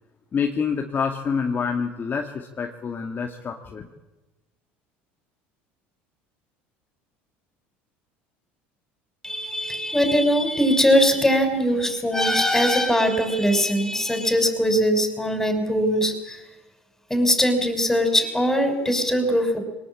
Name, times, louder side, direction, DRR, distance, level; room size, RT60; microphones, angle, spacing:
voice 1, 0.3-3.9, left 6 dB, 35° left, 3 dB, 2.2 m, -27 dB
voice 2, 9.2-16.4 17.1-19.6, equal, 5° left, 7 dB, 6.0 m, -21 dB
23.0 x 19.5 x 8.7 m, 1.1 s
supercardioid pair, 90°, 6 cm